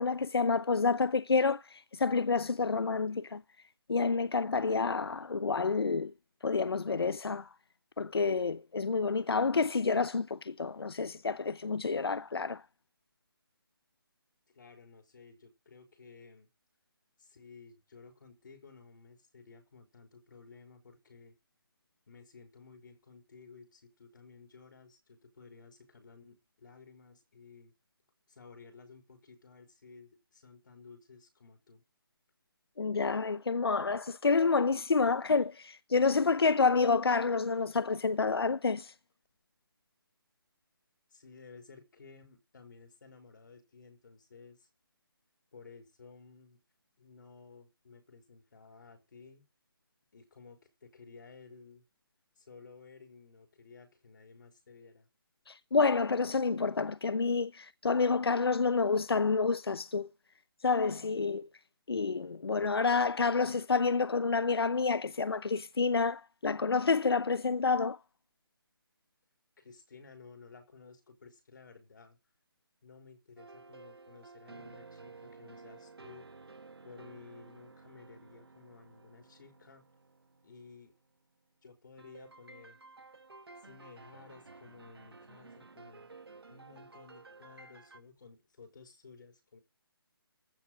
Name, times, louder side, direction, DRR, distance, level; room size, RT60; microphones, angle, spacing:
voice 1, 0.0-3.4 3.9-6.1 6.4-7.5 8.0-12.6 32.8-38.9 55.5-60.1 60.6-61.5 61.9-68.0, left 4 dB, 90° left, 0.8 m, -29 dB
voice 2, 14.5-16.5 17.2-21.3 22.1-27.7 28.3-31.8 41.1-44.7 45.5-46.6 47.0-49.5 50.1-51.8 52.4-55.1 69.6-72.2 72.8-76.3 76.8-79.8 80.4-80.9 81.6-82.8 83.6-86.1 86.5-89.6, left 4 dB, 55° left, 5.2 m, -55 dB
sound 1, 73.4-81.1 82.0-88.0, right 3 dB, 85° right, 2.1 m, -54 dB
15.0 x 7.0 x 7.7 m
hypercardioid pair, 165°, 13 cm